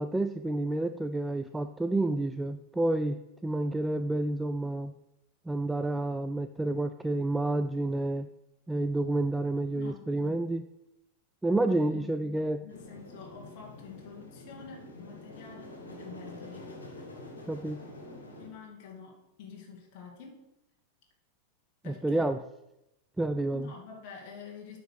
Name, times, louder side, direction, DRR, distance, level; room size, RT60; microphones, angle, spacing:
voice 1, 0.0-4.9 5.5-8.3 8.7-10.6 11.4-12.6 17.5-17.8 21.8-22.4 23.2-23.7, right 2 dB, 5° right, 9 dB, 0.4 m, -29 dB
voice 2, 9.7-10.1 11.6-12.0 12.6-16.7 18.4-20.4 21.8-22.3 23.5-24.8, left 6 dB, 45° left, 0 dB, 2.1 m, -47 dB
sound 1, 12.7-18.5, left 1 dB, 75° left, 2.2 m, -46 dB
8.8 x 5.1 x 6.5 m, 0.89 s
figure-of-eight pair, 90°, 0 cm